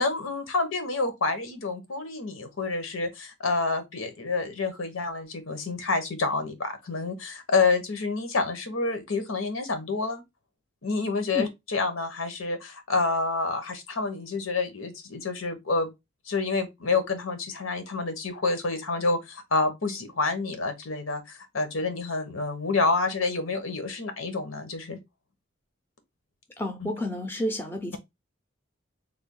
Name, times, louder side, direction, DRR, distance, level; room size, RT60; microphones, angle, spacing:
voice 1, 0.0-10.2 10.8-15.9 16.3-25.0 26.8-26.9, left 3 dB, 85° left, 1.0 m, -28 dB
voice 2, 26.6-28.0, left 1 dB, 10° left, 0.5 m, -30 dB
3.3 x 2.2 x 3.7 m
head